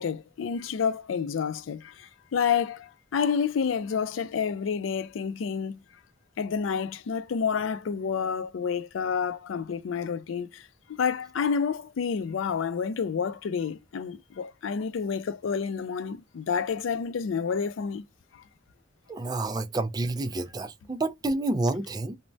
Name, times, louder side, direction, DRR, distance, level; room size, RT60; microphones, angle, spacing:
voice 1, 0.0-5.8 6.4-18.0, left 6 dB, 90° left, 0.4 m, -29 dB
voice 2, 19.1-22.2, right 2 dB, 20° right, 0.4 m, -29 dB
3.2 x 2.1 x 2.6 m
head